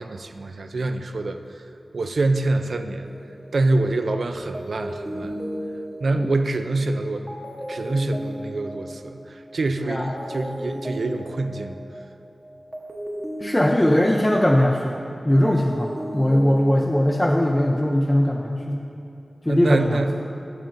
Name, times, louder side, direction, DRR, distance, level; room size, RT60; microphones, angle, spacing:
voice 1, 0.0-1.4 1.9-3.1 3.5-5.3 6.0-7.3 7.6-11.8 19.5-20.1, right 2 dB, 80° right, 8 dB, 0.3 m, -25 dB
sound 1, 3.0-4.0 4.5-9.7 10.0-15.0 15.3-17.4, equal, 20° right, 0.9 m, -35 dB
voice 2, 13.4-18.8 19.4-20.2, left 1 dB, 15° left, 0 dB, 0.4 m, -20 dB
12.5 x 5.9 x 2.5 m, 2.6 s
wide cardioid pair, 85°, 0 cm